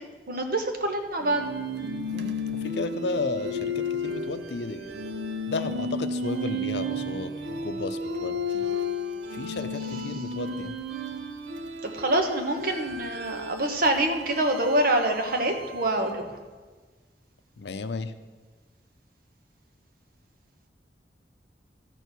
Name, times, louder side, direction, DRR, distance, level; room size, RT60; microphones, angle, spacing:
voice 1, 0.3-1.4 11.8-16.2, right 1 dB, 55° right, 4 dB, 1.2 m, -25 dB
sound 1, 1.2-16.3, left 2 dB, 90° right, 0.7 m, -33 dB
voice 2, 2.6-4.9 5.5-8.7 9.3-10.8 17.6-18.1, left 3 dB, 70° left, 10 dB, 0.6 m, -33 dB
13.5 x 4.6 x 6.7 m, 1.4 s
head